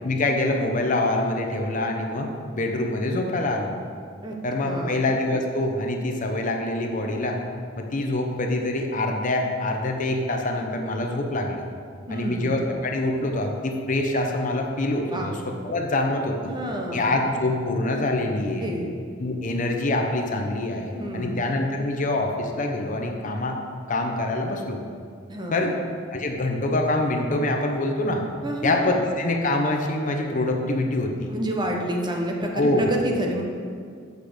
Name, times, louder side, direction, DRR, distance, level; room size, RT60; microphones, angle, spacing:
voice 1, 0.0-2.3 2.6-3.7 4.4-7.4 7.8-11.6 12.1-15.4 15.6-16.5 16.9-18.7 19.2-23.6 23.9-24.8 25.5-25.7 26.1-28.2 28.6-31.3 32.5-32.9, left 2 dB, 40° left, 2 dB, 0.8 m, -25 dB
voice 2, 4.6-5.0 12.1-12.5 15.1-15.3 16.4-17.1 18.6-18.9 20.9-21.4 25.3-25.7 28.4-28.9 31.3-33.4, equal, 20° right, 1 dB, 0.9 m, -29 dB
8.3 x 6.7 x 5.1 m, 2.2 s
head